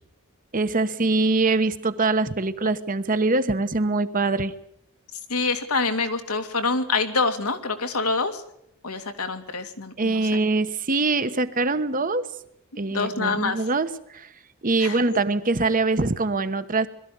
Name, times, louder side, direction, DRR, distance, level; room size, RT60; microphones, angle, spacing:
voice 1, 0.5-4.5 10.0-12.3 12.8-14.3 14.6-16.9, right 3 dB, 40° right, 11 dB, 1.1 m, -23 dB
voice 2, 5.3-8.4 8.8-10.4 12.7-13.6 14.8-15.2, left 4 dB, 90° left, 6 dB, 2.4 m, -26 dB
21.5 x 13.5 x 9.4 m, 0.75 s
head